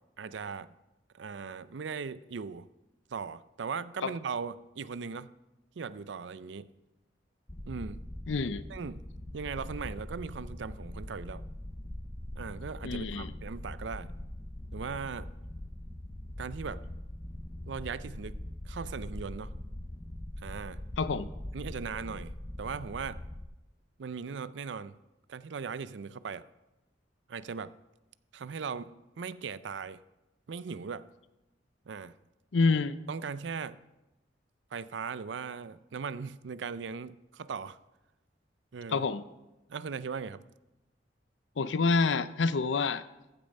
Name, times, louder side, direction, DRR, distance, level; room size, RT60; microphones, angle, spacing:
voice 1, 0.2-0.7 1.1-2.7 3.1-5.3 5.8-6.7 7.7-8.0 8.7-9.0 9.3-11.4 12.4-14.1 14.7-15.3 16.4-16.8 17.7-18.4 18.7-19.5 20.4-20.8 21.5-23.2 24.0-25.0 25.3-26.4 27.3-27.7 28.3-30.0 30.5-31.0 31.9-32.1 33.1-33.8 34.7-37.8 38.7-39.0 39.7-40.4, right 5 dB, 70° right, 16 dB, 0.5 m, -38 dB
sound 1, 7.5-23.5, left 1 dB, 15° left, 0.5 m, -42 dB
voice 2, 8.3-8.7 12.8-13.3 21.0-21.3 32.5-33.0 38.9-39.2 41.6-43.0, left 4 dB, 85° left, 15 dB, 0.6 m, -27 dB
14.5 x 6.7 x 5.3 m, 0.99 s
head